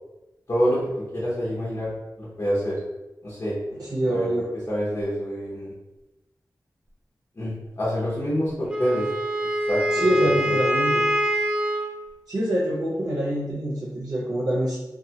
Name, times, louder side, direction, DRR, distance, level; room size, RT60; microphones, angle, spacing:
voice 1, 0.5-1.9 2.2-2.8 3.2-3.6 4.1-4.3 4.7-5.7 7.4-9.1 9.7-10.6, equal, 45° left, -9 dB, 0.8 m, -27 dB
voice 2, 3.7-4.5 9.9-11.1 12.3-14.8, right 1 dB, 60° right, -6 dB, 0.6 m, -25 dB
Wind instrument woodwind instrument, 8.7-11.9, equal, 10° right, 0.5 m, -24 dB
2.7 x 2.3 x 2.8 m, 1.0 s
wide cardioid pair, 80°, 7 cm